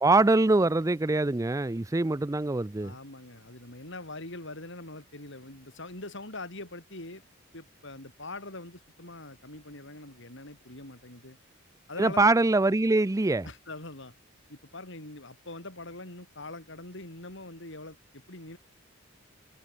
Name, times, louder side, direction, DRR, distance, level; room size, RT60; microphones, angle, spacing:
voice 1, 0.0-2.9 12.0-13.5, right 2 dB, 15° right, 0.5 m, -23 dB
voice 2, 2.8-7.2 7.5-11.4 11.9-12.3 13.4-14.1 14.5-18.6, left 2 dB, 60° left, 6.6 m, -43 dB
open air
head